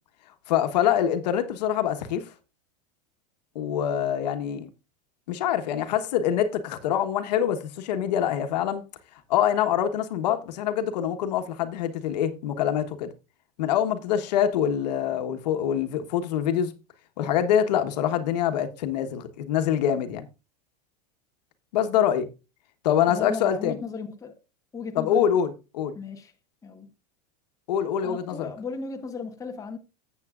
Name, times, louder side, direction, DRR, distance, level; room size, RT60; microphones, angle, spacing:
voice 1, 0.5-2.3 3.5-4.7 5.3-8.8 9.3-13.1 13.6-16.7 17.2-20.2 21.7-22.3 22.8-23.7 24.9-25.9 27.7-28.5, left 9 dB, 80° left, 1.2 m, -25 dB
voice 2, 23.1-24.3 24.7-25.3 25.9-26.3 26.6-26.9 28.0-29.8, left 4 dB, 15° left, 1.2 m, -35 dB
13.0 x 7.7 x 2.5 m
supercardioid pair, 135°, 21 cm